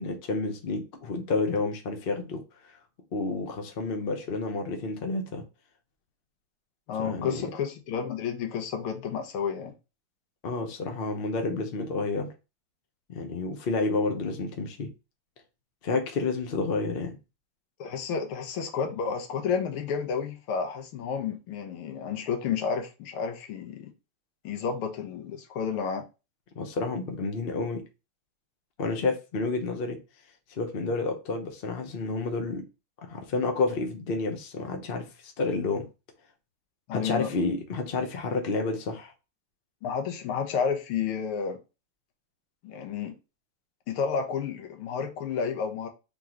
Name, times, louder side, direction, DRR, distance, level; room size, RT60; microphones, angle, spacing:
voice 1, 0.0-2.8 3.1-5.4 7.0-7.5 10.4-12.3 13.1-14.9 15.8-17.2 26.5-27.8 28.8-30.0 30.5-32.6 33.1-35.9 36.9-39.1, left 3 dB, 50° left, 0.6 m, -30 dB
voice 2, 6.9-9.7 17.8-23.9 24.4-26.1 36.9-37.3 39.8-41.6 42.6-43.1 43.9-45.9, left 6 dB, 90° left, 1.8 m, -31 dB
3.8 x 3.7 x 3.0 m
omnidirectional pair, 2.4 m